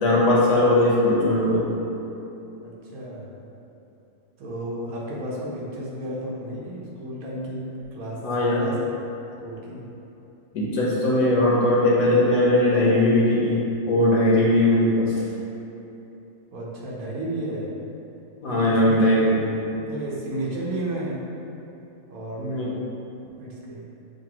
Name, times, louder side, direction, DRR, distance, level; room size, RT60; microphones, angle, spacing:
voice 1, 0.0-1.7 8.2-8.7 10.5-15.1 18.4-19.4 22.4-22.7, left 1 dB, 80° left, -6 dB, 1.4 m, -19 dB
voice 2, 2.6-3.3 4.4-8.8 9.2-9.9 16.5-17.7 18.5-19.4 19.7-21.3 22.1-22.6 23.4-23.8, right 1 dB, 90° right, -4 dB, 1.3 m, -33 dB
6.7 x 2.7 x 2.9 m, 3.0 s
omnidirectional pair, 1.5 m